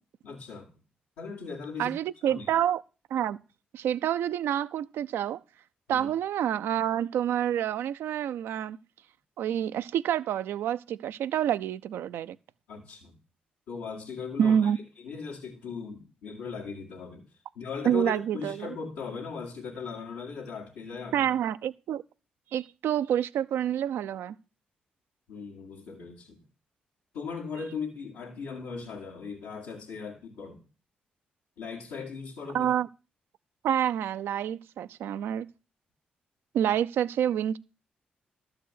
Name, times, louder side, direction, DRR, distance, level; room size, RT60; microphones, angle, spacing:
voice 1, 0.2-0.7 1.2-2.0 2.3-2.5 5.9-6.1 12.7-13.2 13.7-14.7 15.0-17.3 17.6-21.3 25.3-26.4 27.1-30.6 31.6-32.7, left 5 dB, 85° left, 1.9 m, -38 dB
voice 2, 1.8-2.8 3.1-3.4 3.7-5.4 5.9-8.8 9.4-12.4 14.4-14.8 17.8-18.8 21.1-22.0 22.5-24.3 32.5-32.9 33.6-35.5 36.5-37.6, right 10 dB, 75° right, 0.5 m, -28 dB
12.5 x 4.9 x 8.1 m
supercardioid pair, 45°, 4 cm